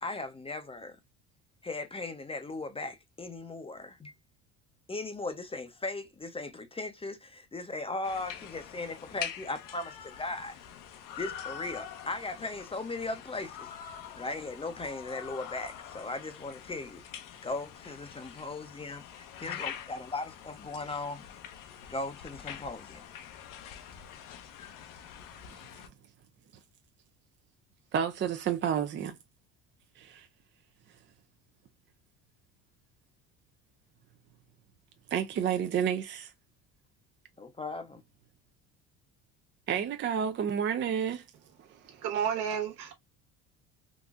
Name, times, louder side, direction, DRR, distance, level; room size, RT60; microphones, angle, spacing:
voice 1, 0.0-1.0 1.6-4.1 4.9-10.5 11.2-13.7 14.1-17.0 17.4-21.3 21.9-23.1 37.4-38.0, left 2 dB, 15° left, 0.6 m, -38 dB
sound 1, 8.0-25.9, left 9 dB, 65° left, 0.8 m, -45 dB
voice 2, 27.9-29.2 30.0-30.3 35.1-36.3 39.7-41.2, right 8 dB, 35° right, 0.4 m, -30 dB
voice 3, 41.9-42.9, right 8 dB, 75° right, 1.3 m, -31 dB
4.0 x 2.4 x 2.4 m
supercardioid pair, 85°, 34 cm